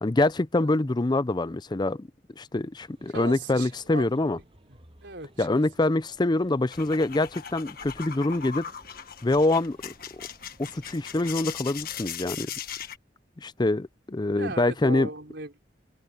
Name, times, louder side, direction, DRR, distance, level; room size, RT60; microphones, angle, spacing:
voice 1, 0.0-2.1 2.4-4.4 5.4-8.7 9.2-9.9 10.6-12.5 13.4-15.1, left 2 dB, 25° left, 0.5 m, -25 dB
sound 1, 2.8-12.1, right 1 dB, 30° right, 7.4 m, -58 dB
voice 2, 3.1-4.3 5.0-5.6 14.4-15.6, right 2 dB, 65° right, 5.0 m, -38 dB
sound 2, 6.7-13.0, left 8 dB, 55° left, 1.6 m, -39 dB
open air
head